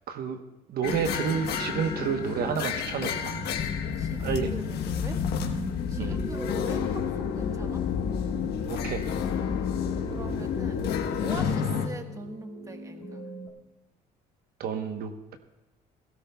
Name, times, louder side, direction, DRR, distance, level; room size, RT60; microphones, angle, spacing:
voice 1, 0.1-0.4 0.7-3.4 4.2-4.5 6.0-6.2 8.7-9.1 14.6-15.4, right 7 dB, 65° right, 6 dB, 1.1 m, -30 dB
sound 1, 0.8-11.9, left 7 dB, 75° left, 1.2 m, -32 dB
sound 2, 1.1-13.5, right 1 dB, 50° right, 5.1 m, -40 dB
sound 3, 3.6-11.6, left 8 dB, 55° left, 0.7 m, -32 dB
voice 2, 3.9-5.2 5.5-7.8 10.1-10.9 11.2-13.2, right 2 dB, 20° right, 5 dB, 1.4 m, -43 dB
17.0 x 16.5 x 2.3 m, 0.98 s
cardioid pair, 110°, 17 cm